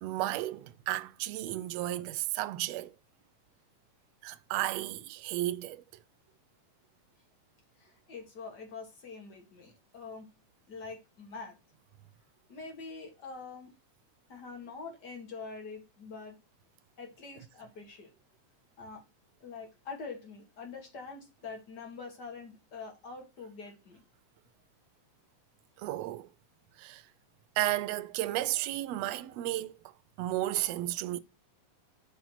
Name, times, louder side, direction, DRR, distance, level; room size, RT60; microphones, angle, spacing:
voice 1, 0.0-2.9 4.2-5.8 25.8-26.3 26.8-27.0 27.6-29.7 30.2-31.2, right 15 dB, 80° right, 1.6 m, -33 dB
voice 2, 7.8-10.3 10.7-11.6 12.5-13.7 14.3-16.4 17.0-18.1 18.8-19.0 19.4-24.0, left 4 dB, 40° left, 2.2 m, -45 dB
7.4 x 4.0 x 5.8 m
omnidirectional pair, 3.3 m